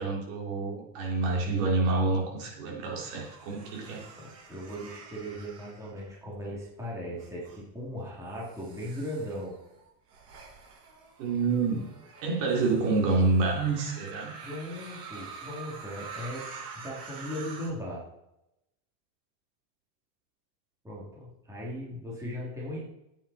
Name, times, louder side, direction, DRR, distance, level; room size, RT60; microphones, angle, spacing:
voice 1, 0.0-4.1 11.2-11.9 12.2-14.3, right 3 dB, 55° right, 0 dB, 3.5 m, -27 dB
sound 1, 3.1-6.5 7.1-7.6 8.3-17.7, right 5 dB, 75° right, 5.6 m, -47 dB
voice 2, 4.2-9.6 14.4-16.4 16.8-18.0 20.8-22.8, equal, 5° right, -5 dB, 2.7 m, -38 dB
15.5 x 9.2 x 4.2 m, 0.87 s
supercardioid pair, 180°, 47 cm